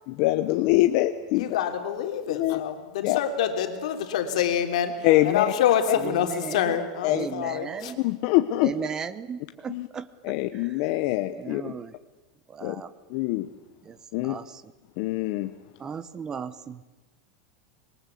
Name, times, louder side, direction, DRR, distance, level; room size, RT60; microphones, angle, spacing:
voice 1, 0.1-1.5 2.3-2.6 3.0-3.2 5.0-5.4 7.0-7.3 8.0-8.9 9.7-9.9 10.2-11.7 12.6-12.8 13.1-13.5 14.1-14.4 15.0-15.5, left 17 dB, 50° left, 0.9 m, -24 dB
voice 2, 1.3-7.9, left 9 dB, 80° left, 3.2 m, -26 dB
voice 3, 7.1-8.0 8.6-10.1 11.3-11.9 12.5-12.9 13.9-14.0 14.2-14.4 15.8-16.8, right 6 dB, 15° right, 0.9 m, -35 dB
25.5 x 22.0 x 8.4 m
supercardioid pair, 165°, 4 cm